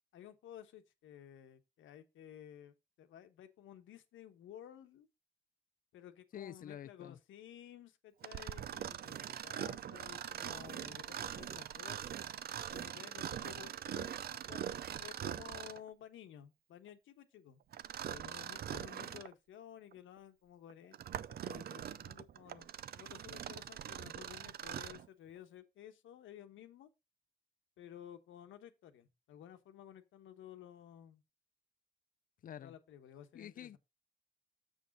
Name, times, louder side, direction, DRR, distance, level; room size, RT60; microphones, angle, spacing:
voice 1, 0.1-5.1 5.9-12.2 12.7-14.1 14.5-17.6 18.1-26.9 27.8-31.2 32.6-33.8, left 10 dB, 80° left, 1.2 m, -54 dB
voice 2, 6.3-7.2 18.7-18.9 32.4-32.7 33.3-33.8, left 10 dB, 45° left, 0.5 m, -48 dB
Mechanisms, 8.2-15.9 17.7-19.3 19.9-20.0 20.7-25.1, right 10 dB, 50° right, 0.5 m, -43 dB
7.0 x 6.4 x 4.0 m
cardioid pair, 90°, 20 cm